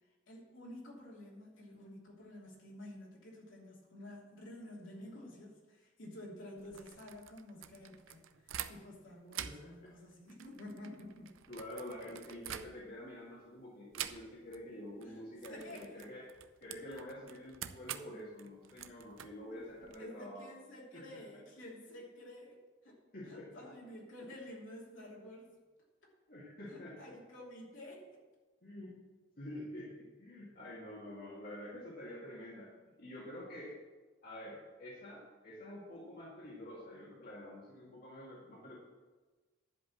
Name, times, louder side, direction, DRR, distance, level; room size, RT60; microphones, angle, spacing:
voice 1, 0.3-11.3 15.0-16.1 19.4-19.6 20.0-22.6 22.8-25.5 26.7-28.2, left 1 dB, 70° left, -3 dB, 2.9 m, -51 dB
sound 1, 6.6-9.0 9.3-13.1 13.9-14.6 14.9-15.1 15.4-20.0, right 10 dB, 80° right, 0.5 m, -47 dB
voice 2, 9.4-9.9 10.9-11.0 11.5-16.2 16.6-20.5 20.9-21.2 23.1-23.7 26.3-27.1 28.6-29.0 29.4-32.7 33.0-33.8 34.2-38.8, left 1 dB, 50° left, -5 dB, 2.0 m, -48 dB
11.0 x 5.2 x 7.4 m, 1.3 s
head